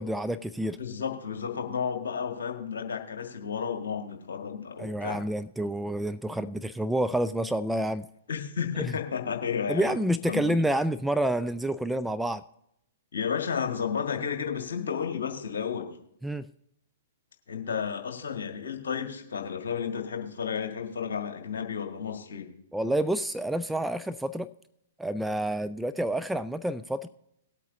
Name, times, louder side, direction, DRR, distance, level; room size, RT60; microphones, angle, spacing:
voice 1, 0.0-0.8 4.8-8.1 9.7-12.4 16.2-16.4 22.7-24.5 25.0-27.1, right 1 dB, 5° right, 11 dB, 0.3 m, -28 dB
voice 2, 0.6-5.2 8.3-10.0 10.3-10.6 13.1-16.0 17.5-22.5, left 7 dB, 60° left, 4 dB, 1.8 m, -32 dB
19.5 x 8.4 x 2.7 m, 0.76 s
figure-of-eight pair, 110°, 0 cm